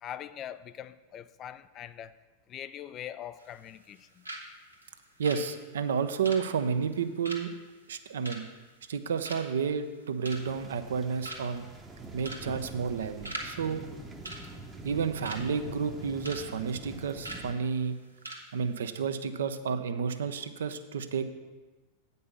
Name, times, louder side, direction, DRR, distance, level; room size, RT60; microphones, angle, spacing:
voice 1, 0.0-2.2 2.5-4.2, left 10 dB, 30° left, 0.3 m, -42 dB
sound 1, 3.4-4.0 4.2-4.5 4.7-9.0 9.2-9.6 10.0-10.6 10.9-11.0 11.2-11.7 12.2-12.5 12.7-13.5 13.8-13.9 14.2-15.4 15.8-16.4 16.7-16.9 17.2-17.4 17.9-18.0 18.2-18.4 18.7-18.9, right 1 dB, 85° right, 1.1 m, -41 dB
voice 2, 5.2-7.5 7.9-8.4 8.9-11.7 12.1-13.8 14.8-18.0 18.5-21.2, right 6 dB, 65° right, 0.5 m, -31 dB
sound 2, 10.3-17.5, right 2 dB, 10° right, 0.8 m, -45 dB
8.6 x 5.4 x 6.8 m
figure-of-eight pair, 90°, 0 cm